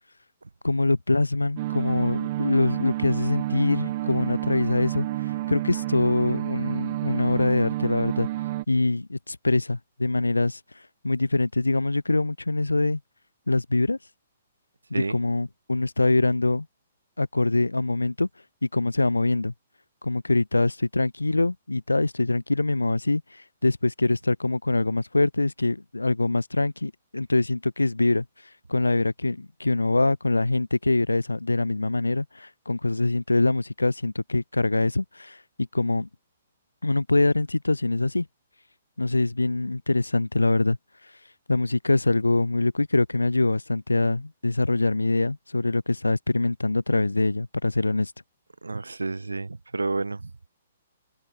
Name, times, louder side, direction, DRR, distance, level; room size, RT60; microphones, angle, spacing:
voice 1, 0.6-5.1 5.5-8.3 8.7-10.6 11.0-13.0 13.5-14.0 14.9-16.7 17.2-18.3 18.6-19.5 20.0-23.2 23.6-28.2 28.7-36.1 36.8-38.3 39.0-40.8 41.5-48.1, left 2 dB, 85° left, 1.1 m, -24 dB
sound 1, 1.6-8.7, right 16 dB, 45° right, 2.4 m, -30 dB
voice 2, 48.6-50.3, right 3 dB, 85° right, 3.3 m, -30 dB
figure-of-eight pair, 125°, 0 cm